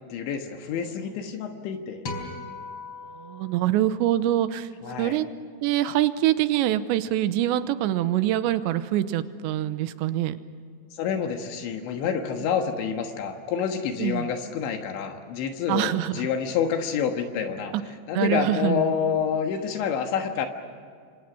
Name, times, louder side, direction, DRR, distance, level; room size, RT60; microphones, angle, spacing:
voice 1, 0.1-2.0 4.8-5.2 10.9-17.7 18.1-20.5, left 7 dB, 80° left, 5 dB, 3.7 m, -28 dB
sound 1, 2.0-4.5, left 3 dB, 30° left, 4.8 m, -39 dB
voice 2, 3.2-4.7 5.0-5.3 5.6-10.4 14.0-14.3 15.7-16.2 17.7-17.8 18.1-18.9, right 13 dB, 80° right, 12 dB, 3.1 m, -24 dB
28.5 x 26.0 x 6.1 m, 2.2 s
omnidirectional pair, 5.3 m